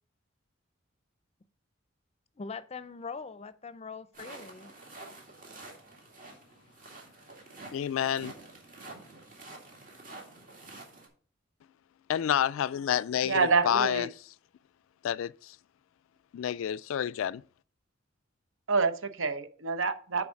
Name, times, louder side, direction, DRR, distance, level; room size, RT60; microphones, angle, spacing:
voice 1, 2.4-4.7, left 5 dB, 30° left, 0.5 m, -42 dB
sound 1, 4.1-11.1, right 2 dB, 45° right, 2.1 m, -48 dB
voice 2, 7.7-8.3 12.1-14.1 15.0-15.6 16.3-17.4, left 9 dB, 80° left, 0.3 m, -29 dB
voice 3, 13.2-14.1 18.7-20.3, right 4 dB, 75° right, 0.8 m, -27 dB
7.0 x 4.8 x 6.3 m
head